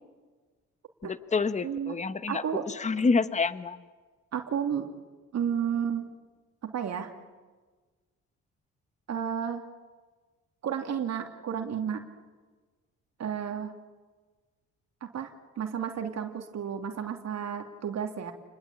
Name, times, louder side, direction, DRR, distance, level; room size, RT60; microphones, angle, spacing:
voice 1, 1.0-3.8, left 4 dB, 25° left, 13 dB, 1.2 m, -28 dB
voice 2, 1.6-2.0 2.3-2.6 4.3-4.9 5.3-6.1 6.6-7.1 9.1-9.6 10.6-12.1 13.2-13.7 15.0-18.3, right 8 dB, 60° right, 4 dB, 2.8 m, -32 dB
29.5 x 21.5 x 8.6 m, 1.3 s
cardioid pair, 90°, 30 cm